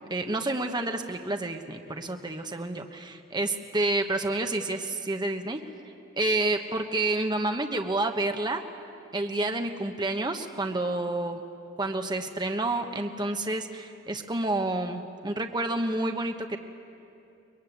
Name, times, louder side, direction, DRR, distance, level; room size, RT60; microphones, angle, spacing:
voice 1, 0.1-5.6 6.1-8.6 9.1-11.4 11.8-16.6, right 2 dB, 20° right, 5 dB, 1.1 m, -29 dB
23.5 x 21.5 x 9.5 m, 2.6 s
head